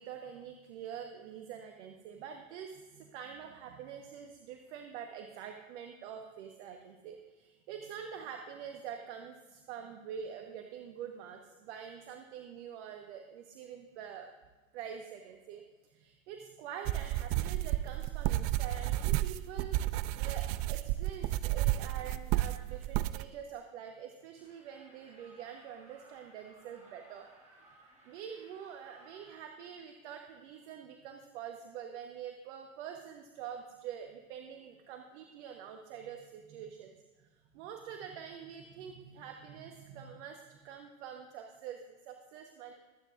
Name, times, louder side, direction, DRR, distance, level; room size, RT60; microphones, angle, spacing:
voice 1, 0.0-14.3 14.7-15.6 15.9-19.8 20.2-27.3 27.5-27.7 28.0-42.7, right 8 dB, 55° right, 4 dB, 1.2 m, -46 dB
sound 1, 16.9-23.2, right 15 dB, 40° right, 0.5 m, -32 dB
sound 2, 24.4-29.4, right 2 dB, 15° right, 4.1 m, -60 dB
22.5 x 9.0 x 2.5 m, 1.2 s
hypercardioid pair, 95°, 40 cm